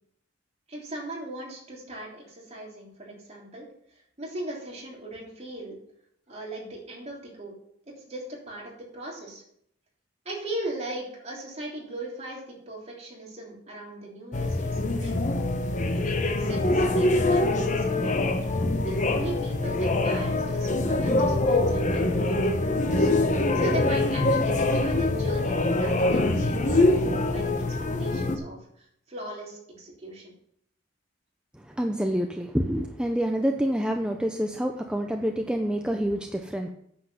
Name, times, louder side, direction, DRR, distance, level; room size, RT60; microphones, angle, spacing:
voice 1, 0.7-5.8 6.3-7.5 8.1-9.4 10.3-15.3 15.9-18.4 18.9-27.7 28.0-30.3, right 1 dB, 35° right, -2 dB, 3.3 m, -39 dB
sound 1, 14.3-28.4, left 2 dB, 40° left, 1.0 m, -24 dB
voice 2, 31.5-36.7, equal, 5° right, 4 dB, 0.6 m, -27 dB
9.3 x 7.5 x 5.7 m, 0.69 s
head